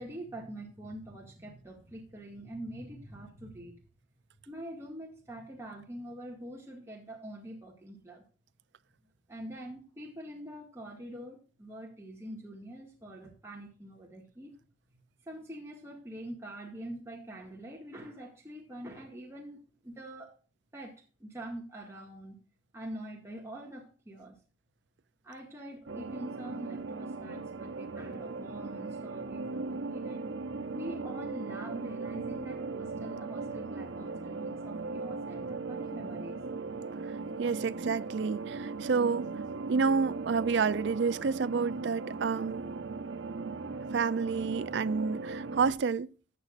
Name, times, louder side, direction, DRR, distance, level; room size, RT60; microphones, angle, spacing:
voice 1, 0.0-3.8 4.5-8.2 9.3-14.5 15.2-20.4 20.7-22.4 22.7-24.4 25.2-30.3 30.7-36.4, right 1 dB, 15° right, 1.9 m, -45 dB
sound 1, 25.9-45.7, right 3 dB, 85° right, 0.9 m, -38 dB
voice 2, 37.4-39.3 39.7-42.7 43.9-46.1, right 5 dB, 70° right, 0.4 m, -29 dB
14.5 x 8.3 x 2.5 m
head